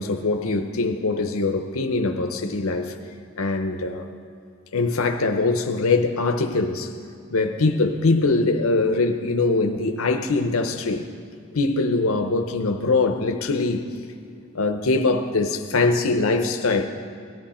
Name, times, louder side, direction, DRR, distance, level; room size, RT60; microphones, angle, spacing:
voice 1, 0.0-2.9 3.4-4.1 4.7-6.9 7.3-11.1 11.5-13.9 14.5-16.9, left 3 dB, 85° left, 6 dB, 0.8 m, -22 dB
18.5 x 12.5 x 4.3 m, 2.3 s
head